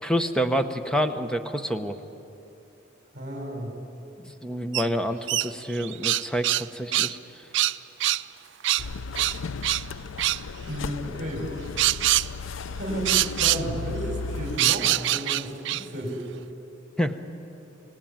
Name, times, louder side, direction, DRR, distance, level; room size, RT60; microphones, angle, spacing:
voice 1, 0.0-2.0 4.2-7.4 17.0-17.2, equal, 5° left, 8 dB, 1.0 m, -28 dB
voice 2, 3.1-3.7 10.6-11.4 12.7-16.2, equal, 40° right, 1 dB, 6.1 m, -32 dB
sound 1, 4.7-4.9 5.3-6.6 6.9-7.1 7.5-8.2 8.6-8.8 9.1-9.8 10.2-10.4 11.8-12.3 13.0-13.6 14.6-15.8, right 15 dB, 65° right, 0.5 m, -24 dB
sound 2, 8.8-14.6, left 4 dB, 85° left, 0.5 m, -35 dB
27.5 x 18.5 x 8.9 m, 2.9 s
head